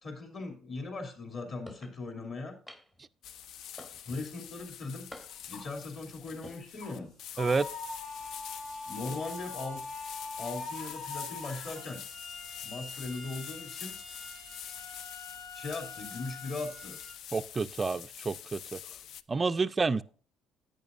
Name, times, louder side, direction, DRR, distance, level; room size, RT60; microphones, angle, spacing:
voice 1, 0.0-2.5 4.0-7.1 8.9-9.8 10.4-12.0 12.6-14.0 15.5-17.0 18.8-19.0, left 3 dB, 45° left, 2.7 m, -39 dB
sound 1, 1.7-2.0 2.7-3.1 3.8-4.3 5.1-5.6 6.3-6.6, left 1 dB, 15° left, 0.9 m, -48 dB
sound 2, 3.2-19.2, left 9 dB, 70° left, 0.4 m, -46 dB
sound 3, 5.3-5.8 6.3-6.5 6.8-17.1, left 3 dB, 85° left, 5.4 m, -43 dB
voice 2, 17.3-18.8 19.3-20.0, right 4 dB, 25° right, 0.4 m, -29 dB
11.0 x 8.7 x 2.5 m
cardioid pair, 120°, 0 cm